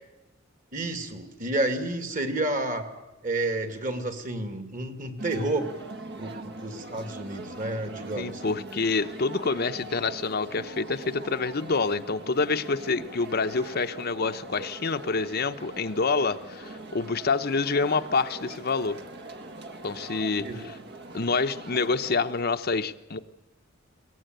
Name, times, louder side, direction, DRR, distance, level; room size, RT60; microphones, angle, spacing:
voice 1, 0.7-2.9 3.2-5.7 6.2-8.4 20.4-20.7, right 2 dB, 45° right, 7 dB, 2.4 m, -30 dB
sound 1, 5.2-22.4, right 2 dB, 60° right, 1.5 m, -42 dB
voice 2, 8.2-19.0 19.8-20.8 21.1-23.2, left 4 dB, 55° left, 8 dB, 0.8 m, -27 dB
22.0 x 18.0 x 9.1 m, 1.0 s
head